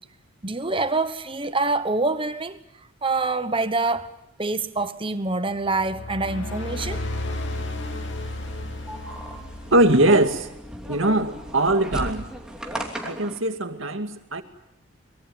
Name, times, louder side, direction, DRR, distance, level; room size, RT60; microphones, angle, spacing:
voice 1, 0.4-2.6 3.0-4.1 4.4-7.0, right 3 dB, 25° right, 1.1 m, -25 dB
sound 1, 5.6-10.3, left 1 dB, 55° left, 3.1 m, -33 dB
sound 2, 6.8-13.4, equal, 5° right, 2.8 m, -36 dB
voice 2, 9.7-10.5 10.9-12.3 13.0-14.4, right 1 dB, 60° right, 2.3 m, -21 dB
24.5 x 22.5 x 9.5 m
head